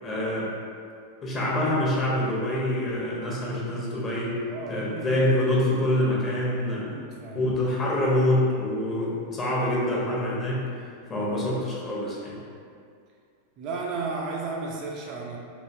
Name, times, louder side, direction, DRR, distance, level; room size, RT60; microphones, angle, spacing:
voice 1, 0.0-0.5 1.2-4.3 4.7-6.9 7.3-10.6 11.1-12.4, left 1 dB, 25° left, -5 dB, 0.8 m, -25 dB
voice 2, 4.5-5.2 6.8-7.4 13.6-15.4, right 3 dB, 40° right, -1 dB, 0.3 m, -34 dB
3.5 x 2.5 x 2.6 m, 2.3 s
figure-of-eight pair, 90°, 0 cm